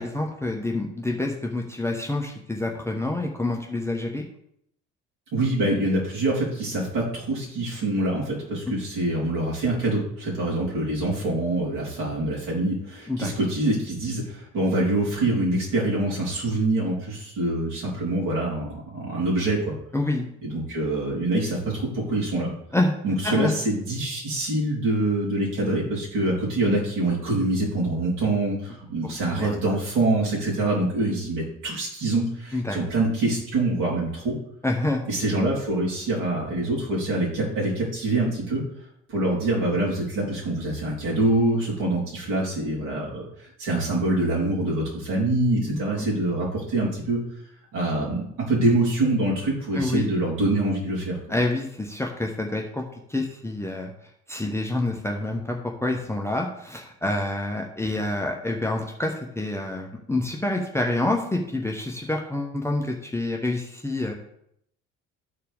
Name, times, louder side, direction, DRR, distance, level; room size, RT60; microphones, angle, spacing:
voice 1, 0.0-4.2 13.1-13.3 19.9-20.2 22.7-23.0 23.2-23.5 29.3-29.6 30.2-30.3 32.5-32.8 34.6-35.1 45.7-46.1 49.7-50.0 51.3-52.8 53.1-53.9 54.3-64.1, left 2 dB, 5° left, 0 dB, 1.0 m, -27 dB
voice 2, 5.3-19.7 20.4-22.5 23.0-34.3 35.1-38.6 39.1-43.3 43.6-47.2 47.7-51.2, right 2 dB, 50° right, -5 dB, 3.7 m, -25 dB
13.0 x 4.6 x 3.5 m, 0.73 s
figure-of-eight pair, 55°, 40 cm